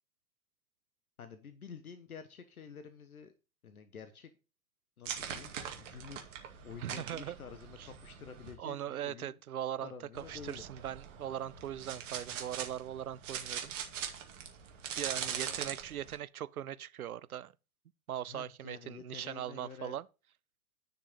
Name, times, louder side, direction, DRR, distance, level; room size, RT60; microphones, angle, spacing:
voice 1, 1.2-3.3 3.6-4.3 5.0-9.4 9.8-10.7 15.2-15.7 18.3-20.0, left 6 dB, 75° left, 1.2 m, -50 dB
sound 1, 5.1-8.5 10.1-16.2, right 8 dB, 55° right, 2.3 m, -42 dB
voice 2, 6.8-7.4 7.8-7.9 8.6-9.9 10.3-13.7 15.0-17.5 18.1-20.0, right 11 dB, 70° right, 0.7 m, -40 dB
10.0 x 6.1 x 5.3 m
figure-of-eight pair, 95°, 44 cm